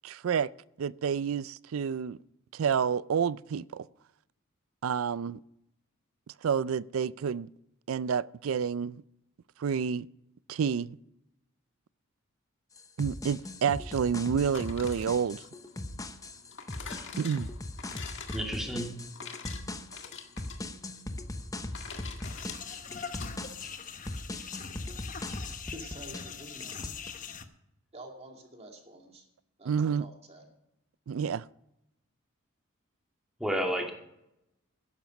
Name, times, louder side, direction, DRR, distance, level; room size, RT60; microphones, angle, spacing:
voice 1, 0.0-0.5 0.8-2.2 2.5-3.9 4.8-5.4 6.4-7.5 7.9-9.0 9.6-10.1 10.5-11.0 13.0-15.4 17.2-17.5 29.6-30.1 31.1-31.4, right 7 dB, 75° right, 0.4 m, -29 dB
sound 1, 12.8-26.3 26.6-27.1, left 1 dB, 15° left, 0.8 m, -40 dB
sound 2, 14.4-23.3, left 6 dB, 60° left, 1.7 m, -46 dB
voice 2, 18.3-18.9 33.4-33.9, equal, ahead, 2.5 m, -30 dB
sound 3, 22.2-27.5, left 6 dB, 40° left, 1.0 m, -42 dB
voice 3, 25.7-26.8 27.9-29.2 29.6-30.5, right 1 dB, 30° right, 2.4 m, -48 dB
13.0 x 10.5 x 5.2 m
head